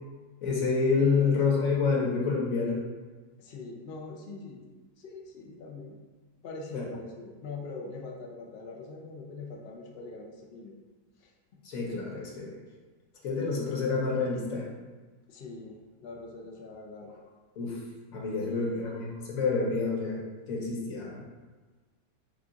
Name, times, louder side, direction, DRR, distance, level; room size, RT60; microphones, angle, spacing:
voice 1, 0.4-2.8 6.7-6.8 11.6-12.6 13.2-14.6 17.6-17.8 18.1-20.2 20.5-21.2, left 4 dB, 60° left, -3 dB, 1.3 m, -28 dB
voice 2, 3.4-4.7 5.0-6.0 6.4-10.7 11.2-11.3 15.3-17.2 18.4-19.0, left 3 dB, 75° left, -1 dB, 0.5 m, -42 dB
5.2 x 2.4 x 3.7 m, 1.3 s
omnidirectional pair, 1.8 m